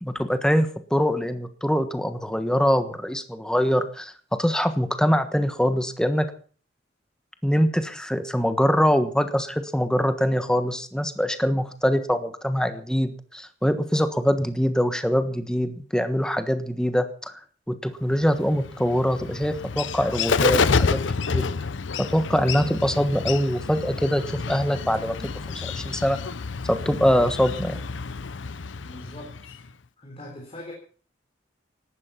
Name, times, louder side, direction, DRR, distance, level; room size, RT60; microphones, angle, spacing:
voice 1, 0.0-6.3 7.4-17.4 17.7-21.0 21.3-21.4 22.0-26.2 26.7-27.9, equal, 5° left, 9 dB, 1.3 m, -23 dB
Bird, 18.2-29.7, left 5 dB, 80° left, 0.7 m, -28 dB
voice 2, 28.8-29.7 30.0-30.7, left 1 dB, 30° left, 0 dB, 4.1 m, -42 dB
17.0 x 12.0 x 5.8 m, 0.43 s
head